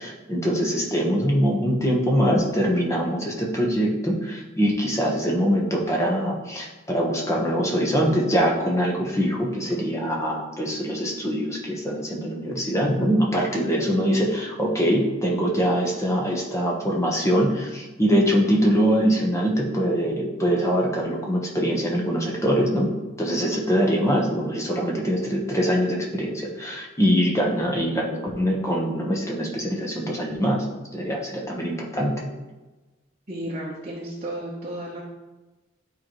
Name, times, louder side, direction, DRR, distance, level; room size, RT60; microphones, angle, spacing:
voice 1, 0.0-22.9 23.2-30.6 30.9-32.2, equal, 15° left, -2 dB, 1.2 m, -23 dB
voice 2, 33.3-35.0, right 1 dB, 35° right, -5 dB, 1.1 m, -33 dB
11.5 x 4.5 x 3.2 m, 1.2 s
head